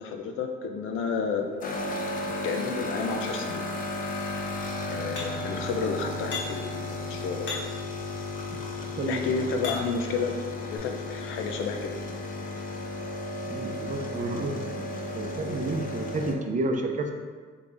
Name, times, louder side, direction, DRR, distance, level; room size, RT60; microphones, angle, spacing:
voice 1, 0.0-1.5 2.4-3.6 4.9-7.5 9.1-12.0, left 5 dB, 85° left, 4 dB, 0.5 m, -31 dB
sound 1, 1.6-16.3, left 2 dB, 45° left, 0.6 m, -34 dB
sound 2, 5.2-5.6 6.3-6.7 7.4-7.9 8.7-10.1 10.8-10.9, left 4 dB, 70° left, 1.2 m, -37 dB
voice 2, 13.5-14.8 15.1-17.1, right 2 dB, 40° right, 3 dB, 0.5 m, -30 dB
3.6 x 3.2 x 3.8 m, 1.5 s
cardioid pair, 90°, 20 cm